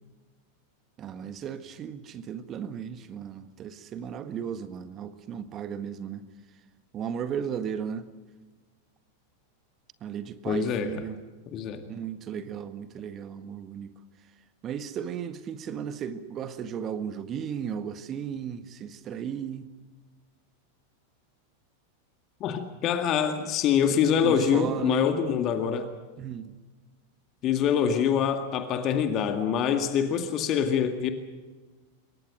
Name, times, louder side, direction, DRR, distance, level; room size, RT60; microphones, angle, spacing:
voice 1, 1.0-6.3 6.9-8.1 10.0-11.2 11.9-13.9 14.6-19.7 23.9-25.1 26.2-26.5, right 8 dB, 30° right, 1.7 m, -35 dB
voice 2, 10.5-11.0 11.5-11.8 22.4-25.9 27.4-31.1, left 8 dB, 35° left, 2.1 m, -25 dB
26.5 x 23.0 x 6.4 m
figure-of-eight pair, 90°, 0 cm